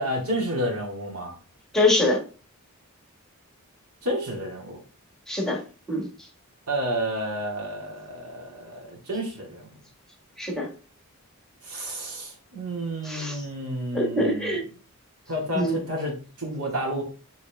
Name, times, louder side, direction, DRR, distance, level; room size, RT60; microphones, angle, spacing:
voice 1, 0.0-1.3 4.0-4.8 6.7-9.7 11.6-14.5 15.3-17.0, right 1 dB, 80° right, -1 dB, 2.2 m, -30 dB
voice 2, 1.7-2.2 5.3-5.6 5.9-6.1 10.4-10.7 13.0-13.5 13.9-14.6 15.5-15.8, left 1 dB, ahead, -1 dB, 1.4 m, -24 dB
6.8 x 4.2 x 3.4 m, 0.36 s
head